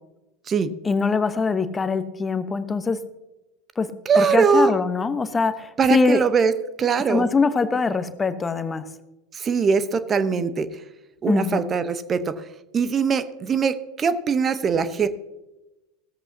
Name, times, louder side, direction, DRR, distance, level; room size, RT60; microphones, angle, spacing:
voice 1, 0.8-3.0 3.8-3.9 4.1-6.2 7.1-8.8 11.3-11.6, left 4 dB, 20° left, 12 dB, 1.0 m, -23 dB
voice 2, 4.1-4.7 5.8-6.5 6.8-7.3 9.3-10.7 11.2-12.4 12.7-15.1, right 6 dB, 30° right, 13 dB, 0.9 m, -21 dB
16.5 x 14.0 x 2.8 m, 0.99 s
figure-of-eight pair, 80°, 0 cm